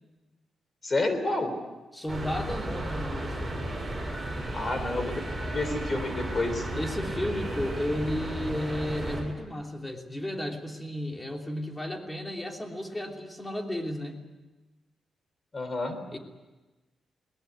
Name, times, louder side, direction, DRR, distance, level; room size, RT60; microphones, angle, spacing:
voice 1, 0.8-1.5 4.5-5.2 5.5-6.7 15.5-16.0, left 2 dB, 30° left, 8 dB, 3.5 m, -29 dB
voice 2, 1.9-3.7 6.7-14.2 16.1-16.2, left 1 dB, 15° left, 2 dB, 3.0 m, -33 dB
sound 1, 2.1-9.2, right 1 dB, 10° right, 7.1 m, -34 dB
21.0 x 20.0 x 9.5 m, 1.2 s
cardioid pair, 115°, 0 cm